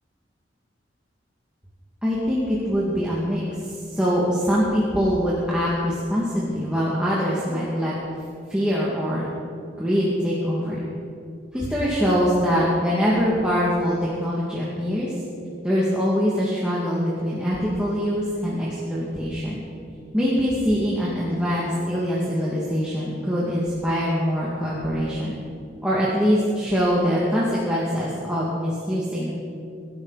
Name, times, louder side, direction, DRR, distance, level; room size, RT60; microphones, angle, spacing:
voice 1, 2.0-7.9 8.5-9.3 9.8-10.9 11.5-15.1 15.6-19.6 20.1-25.4 25.8-29.3, equal, 5° right, -7 dB, 2.2 m, -23 dB
23.0 x 12.0 x 4.2 m, 2.5 s
head